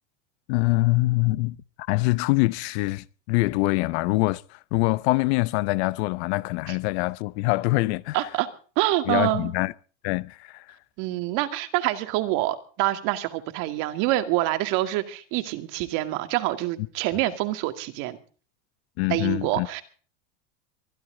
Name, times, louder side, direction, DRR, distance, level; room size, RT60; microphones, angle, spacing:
voice 1, 0.5-1.6 1.9-8.2 9.1-9.7 10.0-10.8 19.0-19.7, left 22 dB, 60° left, 0.8 m, -24 dB
voice 2, 8.1-8.5 8.8-9.5 11.0-18.2 19.1-19.8, right 16 dB, 55° right, 2.3 m, -26 dB
24.0 x 13.0 x 3.9 m
supercardioid pair, 140°, 37 cm